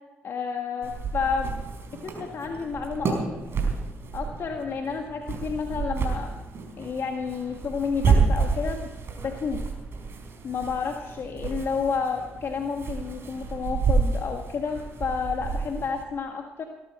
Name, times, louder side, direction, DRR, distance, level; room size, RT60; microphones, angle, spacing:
voice 1, 0.2-1.6 2.0-3.2 4.1-6.3 6.8-8.8 9.2-9.6 10.4-16.6, left 5 dB, 55° left, 3 dB, 1.7 m, -30 dB
sound 1, 0.8-16.0, right 4 dB, 55° right, 4.9 m, -29 dB
19.0 x 13.5 x 4.4 m, 1.2 s
hypercardioid pair, 50°, 5 cm